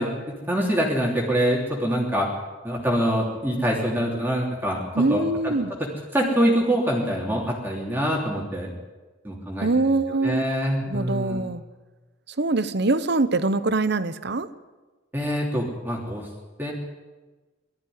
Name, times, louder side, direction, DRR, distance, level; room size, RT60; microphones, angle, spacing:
voice 1, 0.0-2.3 2.6-5.5 5.8-8.7 9.2-9.9 10.2-11.5 15.1-16.3 16.6-16.7, equal, 10° right, -3 dB, 3.2 m, -25 dB
voice 2, 4.9-5.7 9.6-10.4 10.9-11.6 12.4-14.5, right 2 dB, 60° right, 13 dB, 1.0 m, -23 dB
20.5 x 13.5 x 9.5 m, 1.3 s
head